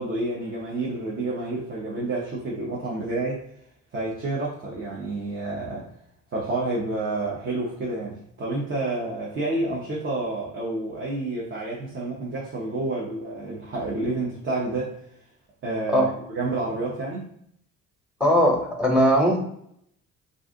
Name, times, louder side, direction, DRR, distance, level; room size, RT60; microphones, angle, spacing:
voice 1, 0.0-3.5 3.9-5.9 6.3-15.0 15.6-16.1 16.3-17.3, right 2 dB, 40° right, -5 dB, 0.8 m, -29 dB
voice 2, 18.2-19.4, equal, 5° right, 1 dB, 0.8 m, -19 dB
2.6 x 2.3 x 3.7 m, 0.70 s
cardioid pair, 90°, 30 cm